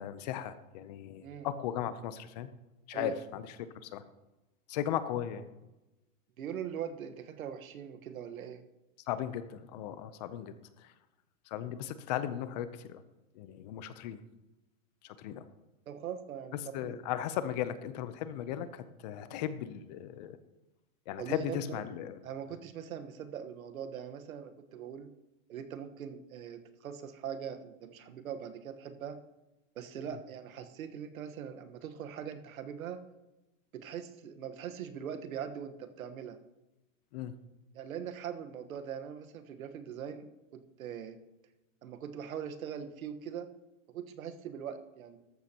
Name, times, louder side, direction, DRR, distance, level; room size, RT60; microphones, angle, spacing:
voice 1, 0.0-2.5 2.9-3.6 3.8-4.0 4.7-5.5 9.1-10.9 11.5-13.0 13.3-14.2 15.0-15.4 16.7-20.4 21.1-22.2 37.1-37.3, left 10 dB, 30° left, 13 dB, 0.6 m, -37 dB
voice 2, 6.4-8.6 15.9-17.0 21.2-21.8 22.2-25.1 25.5-29.2 29.7-33.0 33.7-36.4 37.7-41.2 41.8-43.5 43.9-45.2, right 8 dB, 85° right, 9 dB, 1.4 m, -41 dB
14.0 x 11.5 x 2.9 m, 0.99 s
supercardioid pair, 155°, 41 cm